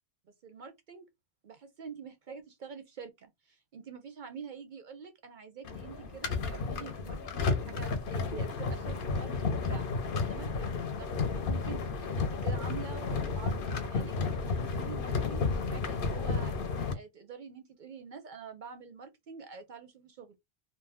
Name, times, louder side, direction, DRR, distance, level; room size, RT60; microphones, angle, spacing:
voice 1, 0.4-1.1 1.4-9.9 10.3-11.1 11.4-14.1 14.7-16.5 16.9-20.4, right 6 dB, 55° right, 0.6 m, -46 dB
sound 1, 5.6-16.9, left 4 dB, 60° left, 0.8 m, -32 dB
2.6 x 2.1 x 3.3 m
omnidirectional pair, 1.1 m